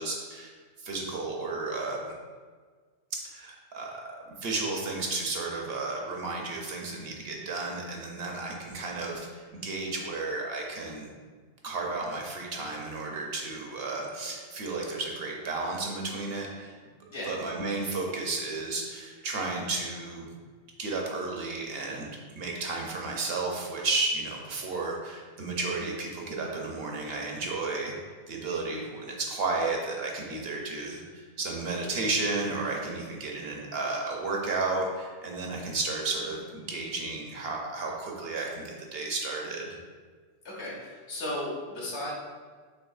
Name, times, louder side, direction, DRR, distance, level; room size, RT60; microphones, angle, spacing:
voice 1, 0.0-2.1 3.2-11.1 11.6-16.8 17.2-20.3 20.8-22.1 22.4-27.9 28.3-39.8, right 3 dB, 60° right, 0 dB, 0.8 m, -33 dB
voice 2, 40.4-42.1, left 1 dB, 70° left, -5 dB, 1.4 m, -35 dB
6.3 x 2.8 x 2.4 m, 1.5 s
omnidirectional pair, 1.2 m